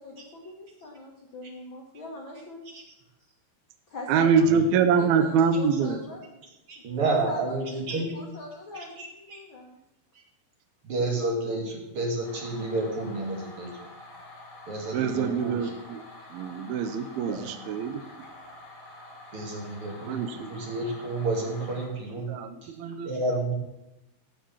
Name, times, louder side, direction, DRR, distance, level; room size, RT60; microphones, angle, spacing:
voice 1, 0.0-2.7 3.9-4.7 5.0-6.2 6.8-9.8, left 2 dB, 70° left, -1 dB, 1.1 m, -42 dB
voice 2, 4.1-6.0 14.9-16.0 16.3-18.0 20.1-20.6 22.3-23.1, right 6 dB, 75° right, 7 dB, 2.5 m, -25 dB
voice 3, 6.7-8.1 8.7-9.4 10.8-13.7 14.7-15.7 17.3-17.5 19.3-22.3 22.6-22.7 23.0-23.5, right 2 dB, 35° right, 0 dB, 3.0 m, -30 dB
sound 1, 12.2-21.9, left 1 dB, 20° left, 4.3 m, -47 dB
15.5 x 6.4 x 7.2 m, 0.92 s
omnidirectional pair, 4.7 m